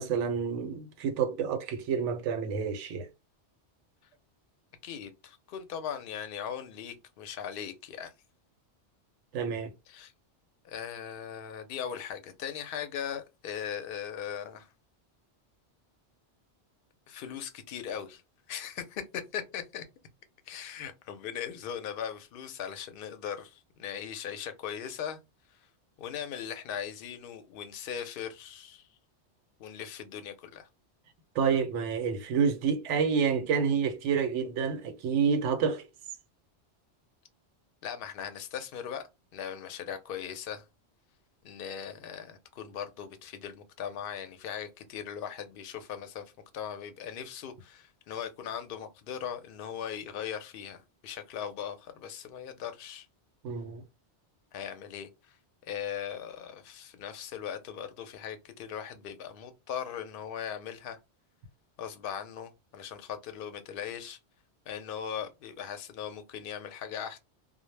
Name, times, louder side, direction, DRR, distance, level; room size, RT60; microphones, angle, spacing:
voice 1, 0.0-3.1 9.3-9.7 31.4-35.8 53.4-53.8, right 6 dB, 85° right, 0.9 m, -28 dB
voice 2, 4.8-8.1 9.9-10.1 10.6-14.7 17.1-18.2 18.5-19.9 20.5-25.2 26.0-28.9 29.6-30.7 37.8-39.0 39.3-40.6 41.4-46.2 46.5-53.1 54.5-55.4 55.6-61.0 61.8-64.2 64.7-67.2, left 8 dB, 60° left, 0.6 m, -39 dB
2.1 x 2.0 x 3.1 m
omnidirectional pair, 1.2 m